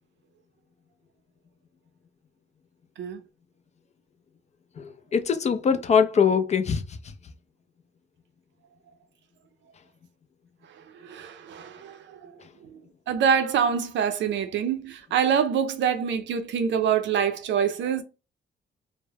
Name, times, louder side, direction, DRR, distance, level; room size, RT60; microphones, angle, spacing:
voice 1, 4.8-6.8, left 6 dB, 35° left, 0.4 m, -22 dB
voice 2, 11.1-12.0 13.1-18.0, right 7 dB, 65° right, 0.5 m, -25 dB
2.2 x 2.1 x 3.2 m
cardioid pair, 90°, 20 cm